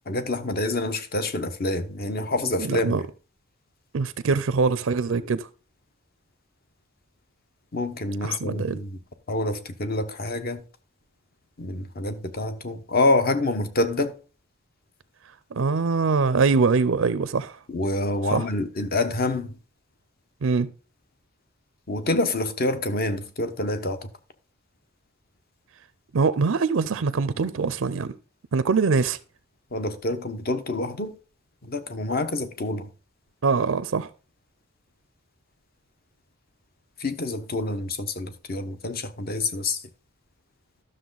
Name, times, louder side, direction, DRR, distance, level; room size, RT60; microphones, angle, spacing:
voice 1, 0.1-3.0 7.7-8.9 9.3-10.6 11.6-14.1 17.7-19.5 21.9-24.0 29.7-31.1 31.6-32.9 37.0-39.8, left 2 dB, 45° left, 1.0 m, -27 dB
voice 2, 2.6-3.0 3.9-5.5 8.2-8.8 15.5-17.6 18.2-18.5 20.4-20.7 26.1-28.1 28.5-29.2 33.4-34.1, right 4 dB, 65° right, 0.5 m, -23 dB
12.5 x 6.5 x 3.9 m
head